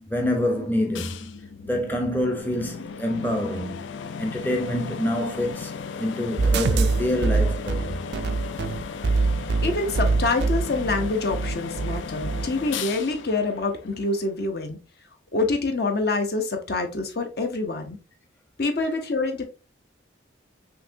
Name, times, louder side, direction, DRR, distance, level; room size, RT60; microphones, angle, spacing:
voice 1, 0.0-1.3 1.6-3.8 4.2-8.0, left 1 dB, 10° left, 0.6 m, -27 dB
sound 1, 0.9-14.4, left 6 dB, 75° left, 0.4 m, -36 dB
sound 2, 6.4-12.5, right 4 dB, 60° right, 0.3 m, -24 dB
voice 2, 9.6-14.8 15.3-18.0 18.6-19.4, left 3 dB, 55° left, 0.8 m, -26 dB
5.7 x 2.9 x 2.6 m
head